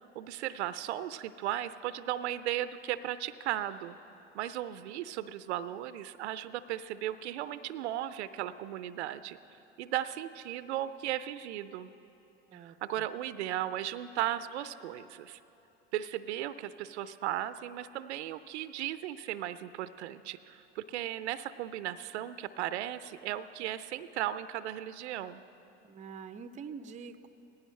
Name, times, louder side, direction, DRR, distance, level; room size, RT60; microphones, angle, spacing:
voice 1, 0.1-4.0 4.3-9.4 9.8-11.9 12.5-15.4 15.9-25.4, right 12 dB, 75° right, 14 dB, 0.5 m, -36 dB
voice 2, 12.5-13.1 25.8-27.3, right 6 dB, 20° right, 11 dB, 0.5 m, -45 dB
18.0 x 15.0 x 3.2 m, 3.0 s
hypercardioid pair, 85°, 34 cm